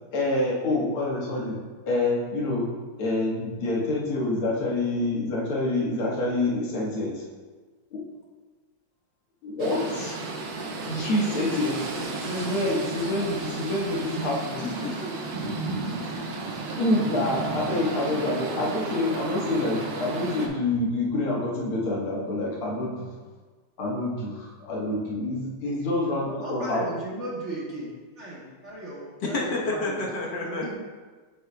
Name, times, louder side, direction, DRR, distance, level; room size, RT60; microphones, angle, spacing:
voice 1, 0.1-2.7 3.0-7.2 7.9-8.0 9.4-10.2 10.9-11.9 12.2-14.7 16.8-23.1 23.8-26.8, left 2 dB, 90° left, -4 dB, 2.2 m, -27 dB
sound 1, 9.6-20.5, right 3 dB, 60° right, 1.1 m, -33 dB
voice 2, 14.6-15.1 16.0-16.4 29.2-30.7, left 2 dB, 60° left, -2 dB, 1.6 m, -30 dB
voice 3, 26.2-30.0 30.4-30.7, right 1 dB, 40° right, -6 dB, 1.3 m, -36 dB
8.2 x 6.7 x 2.2 m, 1.4 s
omnidirectional pair, 2.3 m